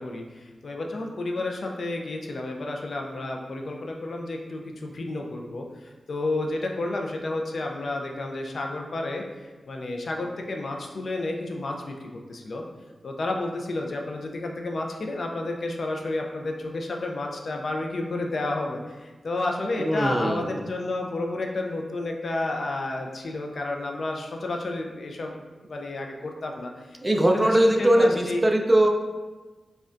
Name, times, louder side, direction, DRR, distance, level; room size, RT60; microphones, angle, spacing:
voice 1, 0.0-12.6 13.0-25.3 25.6-27.0 27.3-28.4, left 2 dB, 65° left, 1 dB, 0.4 m, -31 dB
voice 2, 19.8-20.6 27.0-28.9, right 1 dB, 20° right, 2 dB, 0.3 m, -20 dB
5.0 x 2.2 x 2.5 m, 1.3 s
wide cardioid pair, 110°, 0 cm